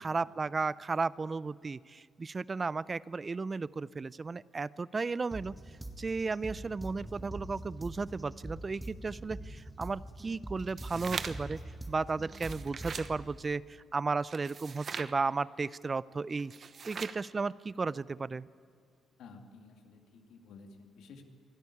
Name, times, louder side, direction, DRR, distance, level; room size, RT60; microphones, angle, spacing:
voice 1, 0.0-5.5 6.0-11.6 11.9-16.5 16.9-18.5, right 4 dB, 30° right, 20 dB, 0.4 m, -34 dB
sound 1, 5.3-13.3, right 1 dB, 10° right, 2.0 m, -44 dB
sound 2, 10.6-11.6 12.2-13.1 14.3-15.1 16.4-17.2, right 6 dB, 45° right, 0.9 m, -41 dB
voice 2, 19.2-21.2, left 4 dB, 80° left, 3 dB, 2.3 m, -53 dB
23.5 x 13.0 x 9.8 m, 2.2 s
cardioid pair, 90°, 0 cm